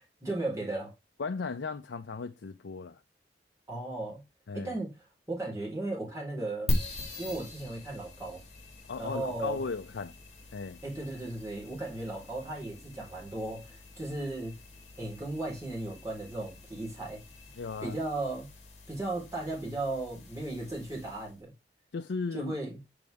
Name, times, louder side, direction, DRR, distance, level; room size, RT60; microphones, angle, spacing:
voice 1, 0.2-0.9 3.7-4.2 4.5-4.9 5.3-6.7 7.2-8.4 9.0-9.6 10.8-14.5 15.0-17.2 17.8-18.5 18.9-21.5 22.3-22.8, right 2 dB, 20° right, 4.1 m, -36 dB
voice 2, 1.2-3.0 4.5-4.8 8.9-10.1 10.5-10.8 17.6-18.0 21.9-22.5, left 4 dB, 90° left, 0.5 m, -36 dB
sound 1, 6.7-21.4, left 1 dB, 40° left, 1.9 m, -41 dB
6.8 x 5.2 x 3.4 m
head